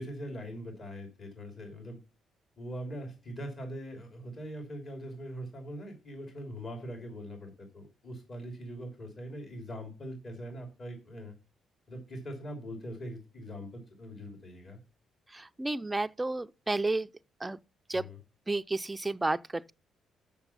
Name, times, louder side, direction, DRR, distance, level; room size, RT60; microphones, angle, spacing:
voice 1, 0.0-2.0 2.6-11.3 11.9-14.8 17.9-18.2, equal, 45° left, 2.9 m, -42 dB
voice 2, 15.3-17.1 17.4-17.6 17.9-18.1 18.5-19.7, right 2 dB, 15° right, 0.4 m, -31 dB
7.0 x 5.9 x 5.6 m
cardioid pair, 80°, 0 cm